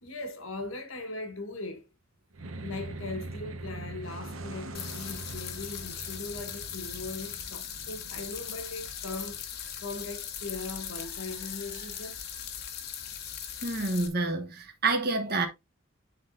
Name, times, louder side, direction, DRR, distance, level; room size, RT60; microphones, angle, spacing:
voice 1, 0.0-1.9 2.6-9.4 9.8-12.2, left 3 dB, 70° left, 1.4 m, -39 dB
sound 1, 2.3-8.9, right 2 dB, 80° right, 1.0 m, -42 dB
sound 2, 4.7-14.1, left 8 dB, 50° left, 1.2 m, -39 dB
voice 2, 13.6-15.5, right 3 dB, 50° right, 1.2 m, -28 dB
11.5 x 3.9 x 2.6 m
head